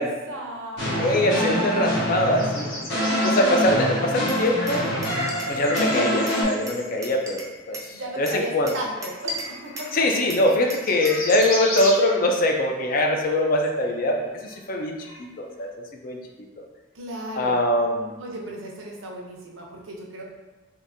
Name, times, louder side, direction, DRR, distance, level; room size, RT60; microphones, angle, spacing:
voice 1, 0.0-1.2 3.1-3.3 7.9-10.0 16.9-17.7 18.2-20.2, right 1 dB, 85° right, -1 dB, 0.7 m, -35 dB
sound 1, 0.8-6.4, equal, 60° left, 1.2 m, -25 dB
voice 2, 1.0-2.7 3.2-4.8 5.5-8.7 9.9-15.0 15.4-15.7 16.0-16.2 16.6-16.7 17.4-18.1, left 1 dB, 45° left, 2 dB, 0.4 m, -22 dB
sound 2, 2.3-6.9 8.2-8.3 8.6-12.8 13.3-13.4 13.6-15.2, left 1 dB, 90° left, 1.1 m, -35 dB
Glass, 4.3-5.9 6.3-7.9 8.3-10.0 10.3-12.0, right 1 dB, 15° right, 0.4 m, -37 dB
3.7 x 2.6 x 2.5 m, 1.1 s
head